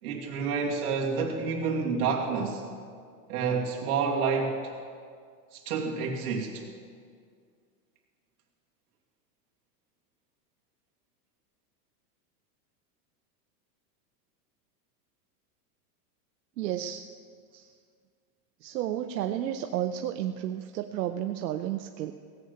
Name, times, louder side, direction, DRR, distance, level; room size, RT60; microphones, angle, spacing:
voice 1, 0.0-2.6 3.3-4.7 5.5-6.7 17.5-17.6, right 5 dB, 65° right, -2 dB, 2.7 m, -29 dB
voice 2, 16.6-17.1 18.6-22.1, right 11 dB, 85° right, 6 dB, 0.8 m, -32 dB
17.0 x 8.1 x 6.7 m, 2.1 s
supercardioid pair, 160°, 48 cm